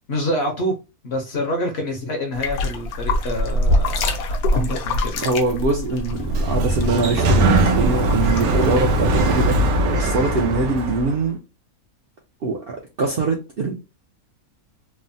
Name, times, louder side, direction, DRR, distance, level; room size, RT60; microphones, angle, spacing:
voice 1, 0.1-0.8 1.0-4.1 4.5-5.1, equal, 55° left, 0.8 m, -26 dB
sound 1, 2.3-9.5, left 1 dB, 80° left, 1.1 m, -24 dB
voice 2, 5.2-9.6 9.9-11.4 12.4-13.7, right 3 dB, 65° right, 0.5 m, -23 dB
Sliding door, 6.1-11.2, right 1 dB, 80° right, 1.1 m, -20 dB
3.2 x 2.0 x 2.6 m
omnidirectional pair, 1.5 m